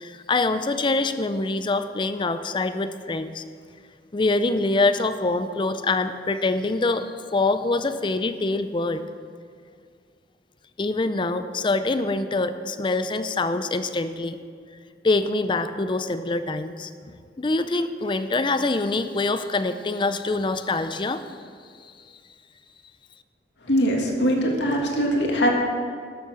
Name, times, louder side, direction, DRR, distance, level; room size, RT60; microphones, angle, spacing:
voice 1, 0.0-3.4 4.1-9.0 10.8-14.4 15.0-17.1 17.4-21.3, left 3 dB, 25° left, 11 dB, 0.4 m, -25 dB
voice 2, 23.7-25.5, equal, 80° left, 0 dB, 1.9 m, -22 dB
12.5 x 7.2 x 6.1 m, 2.1 s
head